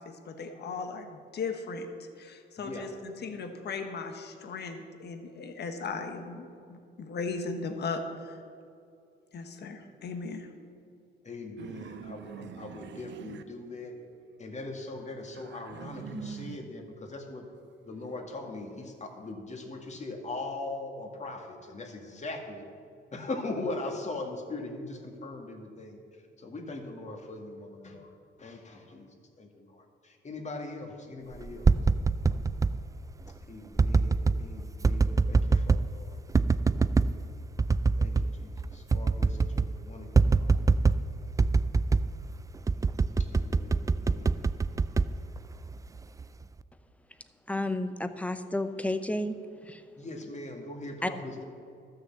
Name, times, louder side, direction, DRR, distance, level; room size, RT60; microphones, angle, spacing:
voice 1, 0.0-8.4 9.3-10.5, left 4 dB, 55° left, 6 dB, 1.3 m, -37 dB
voice 2, 2.6-2.9 11.2-14.0 14.4-17.5 17.8-22.7 23.1-29.1 29.4-31.7 33.5-36.2 38.0-40.6 43.2-44.5 50.0-51.4, left 2 dB, 35° left, 2 dB, 2.0 m, -40 dB
sound 1, 11.6-14.2 14.6-16.8 17.3-19.3, right 8 dB, 65° right, 0.6 m, -45 dB
sound 2, 31.4-32.8 33.8-34.4 34.8-35.9 36.3-37.1 37.6-38.3 38.6-38.7 38.9-39.7 40.2-41.1 41.4-42.1 42.7-45.8 46.2-46.6, right 4 dB, 15° right, 0.3 m, -24 dB
voice 3, 47.5-49.3 49.7-49.8 51.0-51.1, left 1 dB, 5° left, 10 dB, 0.8 m, -31 dB
12.5 x 6.5 x 7.5 m, 2.4 s
cardioid pair, 90°, 20 cm